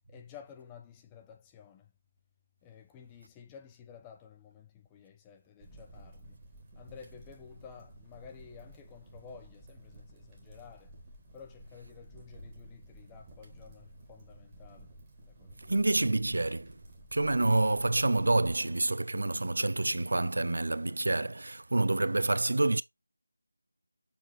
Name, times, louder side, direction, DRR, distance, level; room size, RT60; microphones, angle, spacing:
voice 1, 0.1-1.9 2.6-6.4 6.8-10.9 11.3-14.9 15.2-16.0, left 7 dB, 10° left, 0.6 m, -52 dB
sound 1, 5.6-18.6, right 1 dB, 15° right, 1.4 m, -53 dB
voice 2, 15.6-16.8 17.1-22.8, right 2 dB, 55° right, 0.3 m, -28 dB
6.8 x 4.3 x 3.4 m
figure-of-eight pair, 165°, 0 cm